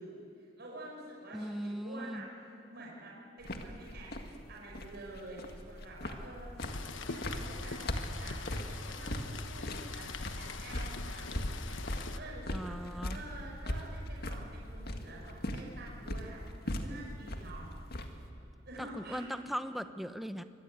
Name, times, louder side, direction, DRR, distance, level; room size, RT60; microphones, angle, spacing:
voice 1, 0.0-2.3 2.7-4.1 4.5-6.5 6.9-17.6 17.9-18.1 18.7-19.3, right 2 dB, 60° right, -3 dB, 5.4 m, -49 dB
voice 2, 1.3-2.3 12.5-13.2 18.8-20.4, equal, ahead, 9 dB, 0.9 m, -39 dB
sound 1, 3.4-18.3, left 1 dB, 55° left, 1.9 m, -40 dB
Rain, 6.6-12.2, left 4 dB, 80° left, 1.3 m, -43 dB
24.0 x 22.5 x 9.2 m, 2.5 s
head